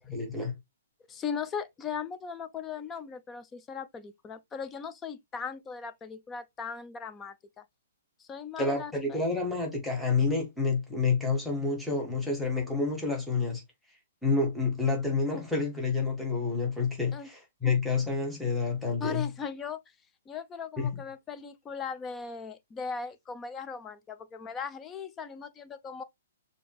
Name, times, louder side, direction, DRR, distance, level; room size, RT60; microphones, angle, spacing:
voice 1, 0.1-0.5 8.6-13.6 14.2-19.3 20.8-21.0, left 4 dB, ahead, 1.6 m, -29 dB
voice 2, 1.1-7.6 8.2-9.2 17.1-17.3 19.0-19.8 20.3-26.0, left 6 dB, 15° left, 0.7 m, -38 dB
6.6 x 2.9 x 2.3 m
hypercardioid pair, 135°, 0 cm